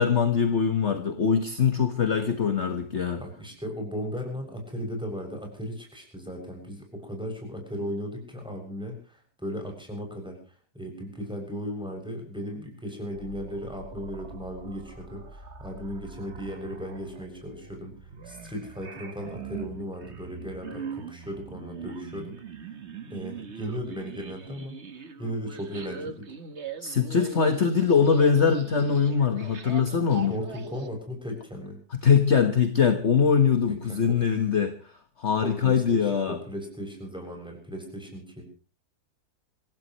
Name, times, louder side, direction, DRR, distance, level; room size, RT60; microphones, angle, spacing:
voice 1, 0.0-3.2 26.8-30.3 32.0-34.8 35.2-36.4, left 6 dB, 45° left, 7 dB, 1.7 m, -22 dB
voice 2, 3.2-22.3 23.1-24.8 25.2-26.3 30.2-31.8 33.7-34.4 35.4-38.4, equal, 5° right, 2 dB, 7.2 m, -36 dB
sound 1, 13.1-30.9, right 5 dB, 45° right, 1.7 m, -42 dB
27.0 x 17.0 x 3.2 m, 0.39 s
omnidirectional pair, 1.7 m